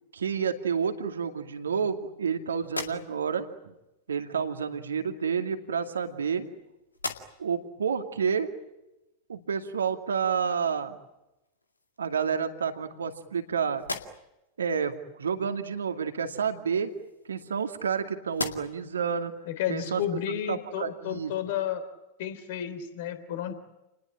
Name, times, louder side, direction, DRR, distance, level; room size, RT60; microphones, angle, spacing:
voice 1, 0.1-3.7 4.1-6.5 7.4-8.5 9.3-11.0 12.0-13.8 14.6-16.9 17.3-19.3 19.7-20.0 20.5-21.3, right 6 dB, 70° right, 6 dB, 2.4 m, -29 dB
sound 1, 2.6-3.5 4.6-4.8 5.7-6.6 6.9-7.6 8.1-8.2 10.9-11.0 11.4-12.1 12.7-13.4 13.7-14.5 16.5-17.9 18.3-19.0, left 3 dB, 80° left, 2.1 m, -39 dB
voice 2, 19.5-21.8 22.2-23.5, left 10 dB, 50° left, 10 dB, 3.4 m, -32 dB
29.5 x 20.5 x 8.9 m, 0.96 s
figure-of-eight pair, 90°, 0 cm